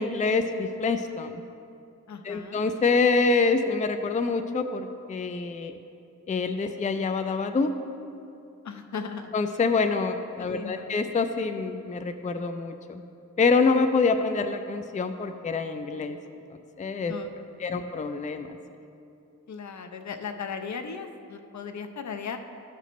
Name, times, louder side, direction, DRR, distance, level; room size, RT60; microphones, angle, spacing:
voice 1, 0.0-1.4 2.2-5.8 6.3-7.7 9.3-13.0 13.4-16.2 16.8-17.1 17.6-18.5, left 4 dB, 25° left, 7 dB, 0.4 m, -26 dB
voice 2, 2.1-2.6 8.6-9.3 10.4-10.9 17.1-17.8 19.5-22.4, left 5 dB, 65° left, 7 dB, 0.7 m, -37 dB
13.5 x 5.9 x 3.1 m, 2.6 s
wide cardioid pair, 80°, 31 cm